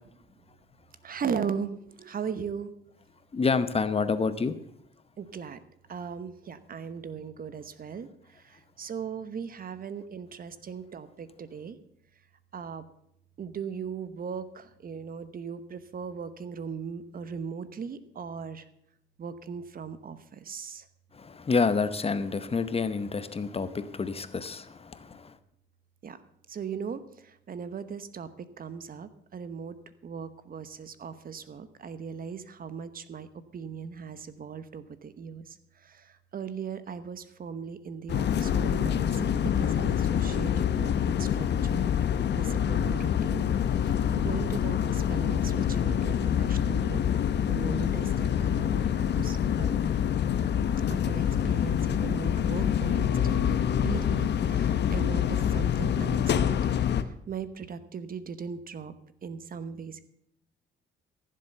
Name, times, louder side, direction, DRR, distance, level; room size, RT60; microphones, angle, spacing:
voice 1, 1.0-2.7 5.2-5.6 5.9-11.8 12.5-12.9 13.4-18.6 19.2-20.9 26.0-26.2 26.5-28.3 28.6-29.8 30.0-33.3 33.5-40.9 41.2-43.4 43.7-49.8 50.9-56.7 57.0-58.9 59.2-60.0, right 6 dB, 45° right, 13 dB, 1.0 m, -38 dB
voice 2, 3.3-4.6 21.1-25.4, left 4 dB, 30° left, 12 dB, 0.9 m, -28 dB
sound 1, 38.1-57.0, left 9 dB, 60° left, 0.9 m, -26 dB
15.0 x 7.6 x 6.7 m, 0.75 s
cardioid pair, 90°, 20 cm